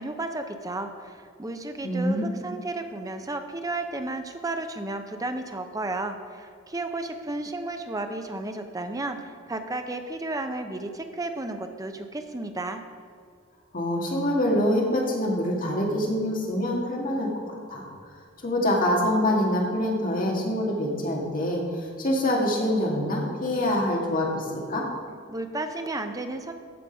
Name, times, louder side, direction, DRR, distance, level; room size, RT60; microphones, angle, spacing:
voice 1, 0.0-12.8 25.3-26.5, right 2 dB, 15° right, 6 dB, 0.7 m, -33 dB
voice 2, 1.8-2.2 13.7-17.8 18.4-24.8, left 1 dB, 45° left, -1 dB, 2.0 m, -25 dB
14.5 x 5.3 x 5.2 m, 2.3 s
head